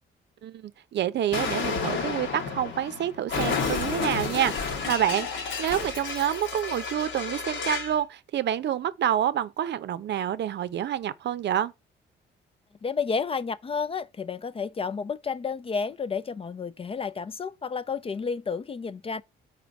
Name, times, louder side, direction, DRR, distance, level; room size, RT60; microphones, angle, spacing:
voice 1, 0.4-11.7, right 10 dB, 60° right, 0.6 m, -28 dB
Explosion, 1.3-8.0, left 5 dB, 70° left, 1.3 m, -31 dB
voice 2, 12.8-19.2, left 5 dB, 30° left, 0.4 m, -31 dB
5.9 x 4.3 x 5.2 m
cardioid pair, 90°, 20 cm